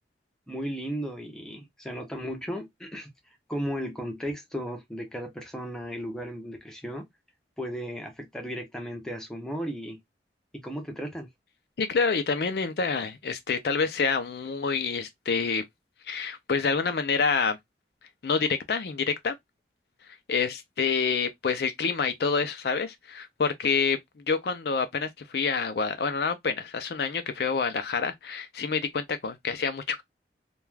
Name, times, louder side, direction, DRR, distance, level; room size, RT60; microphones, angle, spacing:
voice 1, 0.5-3.1 3.5-7.1 7.6-10.0 10.5-11.3, equal, 5° left, 0.6 m, -35 dB
voice 2, 11.8-15.6 16.1-17.6 18.2-19.4 20.3-24.0 24.3-30.0, left 5 dB, 60° left, 0.4 m, -27 dB
2.3 x 2.2 x 3.1 m
head